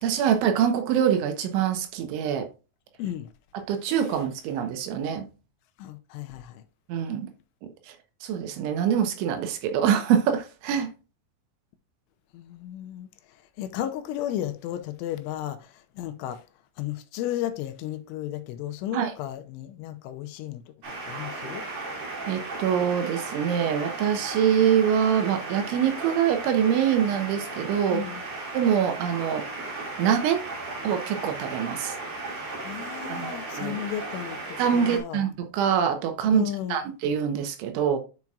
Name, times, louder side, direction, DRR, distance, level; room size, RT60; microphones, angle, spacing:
voice 1, 0.0-2.5 3.7-5.3 6.9-7.3 7.9-8.0 8.2-10.9 18.9-19.1 22.3-28.0 28.5-29.5 30.0-30.4 30.8-31.9 33.1-33.8 34.6-38.0, right 8 dB, 75° right, 3.3 m, -24 dB
voice 2, 3.0-3.3 5.8-6.6 12.3-13.1 13.6-16.4 16.8-20.6 21.1-21.6 27.9-28.2 32.6-35.2 36.3-36.8, left 11 dB, 80° left, 3.1 m, -34 dB
sound 1, 20.8-35.0, right 3 dB, 45° right, 2.7 m, -36 dB
10.5 x 5.8 x 2.4 m
omnidirectional pair, 5.6 m